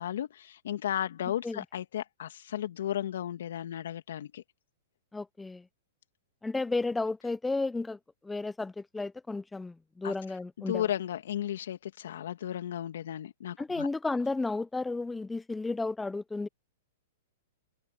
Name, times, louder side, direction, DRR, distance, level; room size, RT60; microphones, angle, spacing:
voice 1, 0.0-4.4 10.0-10.1 10.7-13.9, left 11 dB, 70° left, 2.4 m, -34 dB
voice 2, 5.1-5.7 6.4-8.0 8.2-10.9 13.6-16.5, left 3 dB, 10° left, 1.0 m, -33 dB
hypercardioid pair, 120°, 0 cm